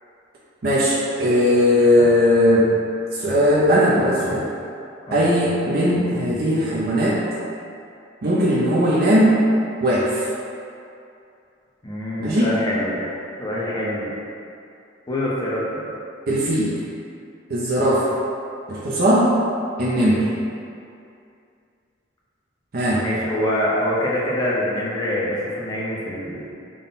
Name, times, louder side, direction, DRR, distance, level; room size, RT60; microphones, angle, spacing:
voice 1, 0.6-2.7 3.1-4.5 5.1-7.2 8.2-9.4 9.8-10.3 12.2-12.5 16.3-16.7 17.5-18.1 18.7-19.4 19.8-20.3 22.7-23.0, equal, 55° right, -6 dB, 0.5 m, -18 dB
voice 2, 1.7-2.1 5.1-5.3 11.8-14.1 15.1-15.9 23.0-26.5, left 1 dB, 20° left, -6 dB, 0.6 m, -25 dB
3.7 x 2.1 x 4.0 m, 2.5 s
head